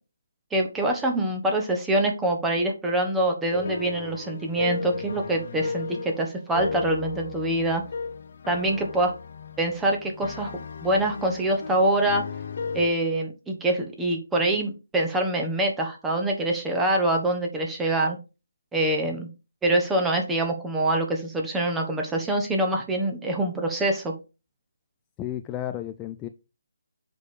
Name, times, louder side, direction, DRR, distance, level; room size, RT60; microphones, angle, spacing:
voice 1, 0.5-7.8 8.5-9.1 9.6-10.5 10.8-12.2 12.7-18.2 18.7-19.3 19.6-24.1, right 1 dB, 5° right, 2 dB, 1.2 m, -25 dB
sound 1, 3.5-12.9, left 5 dB, 45° left, 0.8 m, -35 dB
voice 2, 25.2-26.3, left 12 dB, 15° left, 8 dB, 0.3 m, -32 dB
6.5 x 5.1 x 4.9 m, 0.30 s
hypercardioid pair, 165°, 0 cm